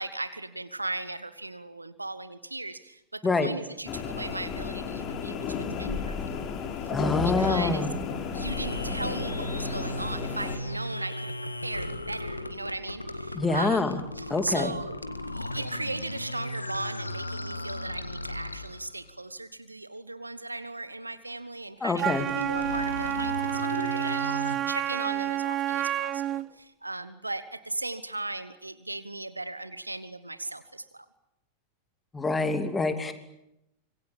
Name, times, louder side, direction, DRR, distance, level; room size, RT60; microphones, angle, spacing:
voice 1, 0.0-6.5 7.2-7.9 8.3-11.3 11.6-15.0 15.3-31.0, right 2 dB, 85° right, 14 dB, 1.2 m, -37 dB
sound 1, 3.9-10.6, left 6 dB, 30° left, 4.6 m, -33 dB
voice 2, 6.9-7.9 13.3-14.0 14.3-14.7 21.8-22.3 32.1-33.1, left 3 dB, 15° left, 8 dB, 2.8 m, -26 dB
sound 2, 8.3-19.1 22.1-24.6, left 1 dB, 85° left, 1.7 m, -36 dB
Wind instrument woodwind instrument, 22.0-26.5, right 11 dB, 30° right, 0.9 m, -29 dB
26.0 x 23.0 x 8.6 m, 0.85 s
figure-of-eight pair, 90°, 0 cm